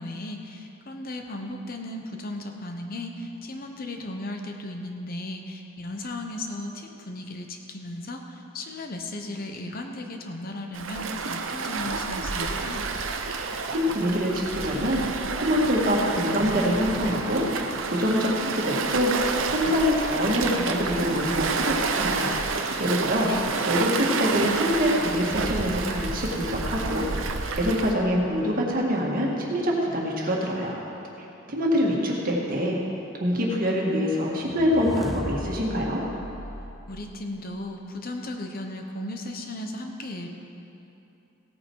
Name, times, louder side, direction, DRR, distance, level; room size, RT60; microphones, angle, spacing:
voice 1, 0.0-12.9 23.1-23.5 36.9-40.3, left 1 dB, 45° left, 3 dB, 0.9 m, -36 dB
Waves surf, 10.7-27.9, right 4 dB, 65° right, 0.8 m, -29 dB
voice 2, 13.7-23.3 23.7-27.1 27.5-30.8 31.5-32.8 33.2-36.0, equal, 40° right, -2 dB, 1.8 m, -25 dB
sound 1, 34.4-37.7, equal, ahead, 0.5 m, -37 dB
16.0 x 8.9 x 4.6 m, 2.9 s
head